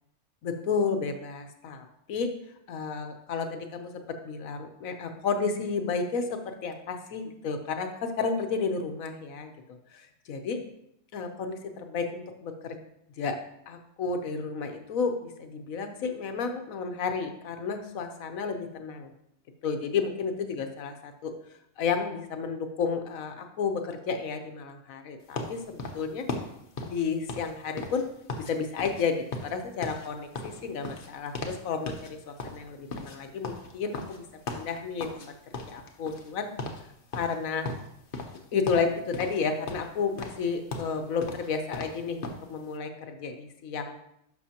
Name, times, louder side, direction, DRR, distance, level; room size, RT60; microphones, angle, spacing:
voice 1, 0.4-2.3 2.7-9.5 9.9-10.6 11.1-12.8 13.2-13.4 13.7-19.1 19.6-21.3 21.8-26.2 26.8-28.0 28.4-29.2 29.4-35.3 35.7-36.5 37.1-37.7 38.5-44.0, left 5 dB, 65° left, 6 dB, 1.2 m, -32 dB
sound 1, 25.4-28.5 28.8-29.1 29.3-31.6 31.9-32.1 32.4-35.3 35.5-36.3 36.6-36.8 37.1-38.4 38.7-39.4 39.7-42.5, left 3 dB, 45° left, 0.8 m, -37 dB
10.5 x 6.4 x 2.9 m, 0.78 s
omnidirectional pair, 1.6 m